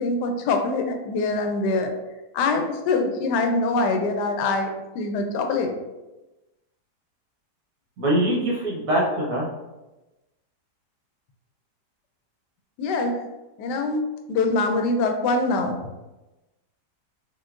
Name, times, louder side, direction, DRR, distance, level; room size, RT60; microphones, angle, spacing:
voice 1, 0.0-1.9 2.3-5.7 12.8-13.2 13.6-15.8, left 3 dB, 90° left, 5 dB, 1.2 m, -24 dB
voice 2, 8.0-9.4, right 1 dB, 60° right, -4 dB, 1.5 m, -23 dB
5.6 x 2.6 x 2.5 m, 1.0 s
omnidirectional pair, 1.7 m